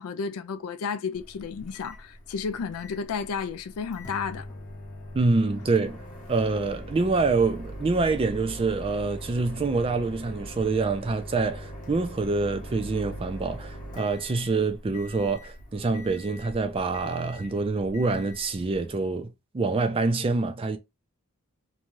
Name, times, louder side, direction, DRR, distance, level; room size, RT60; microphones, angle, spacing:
voice 1, 0.0-4.5, left 5 dB, 75° left, 0.4 m, -32 dB
Microwave oven, 1.1-19.1, equal, 35° left, 0.8 m, -42 dB
voice 2, 5.1-6.0 6.3-20.8, right 3 dB, 25° right, 0.3 m, -26 dB
2.6 x 2.3 x 3.0 m
head